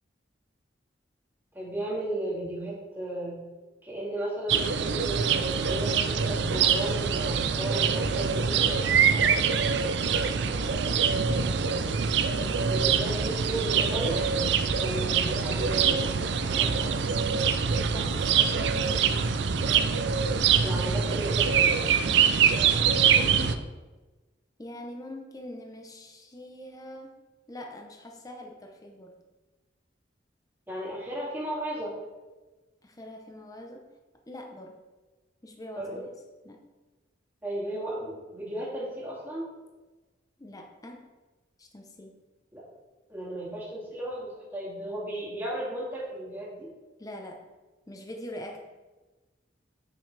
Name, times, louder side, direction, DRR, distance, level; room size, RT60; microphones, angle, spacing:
voice 1, 1.5-3.4 3.8-5.3 5.7-8.7 12.3-14.3 14.8-16.7 20.6-21.7 30.7-31.9 35.8-36.0 37.4-39.5 42.5-42.6 43.1-46.7, right 1 dB, 10° right, -6 dB, 2.3 m, -35 dB
sound 1, 4.5-23.6, right 6 dB, 65° right, 0.5 m, -24 dB
voice 2, 9.0-9.5 17.7-19.2 22.9-23.7 24.6-27.2 27.5-29.2 32.8-33.8 34.3-34.8 35.4-36.1 36.4-36.6 40.4-41.0 41.6-42.1 47.0-47.4 47.9-48.6, left 1 dB, 20° left, 2 dB, 0.7 m, -43 dB
8.6 x 6.1 x 3.3 m, 1.2 s
head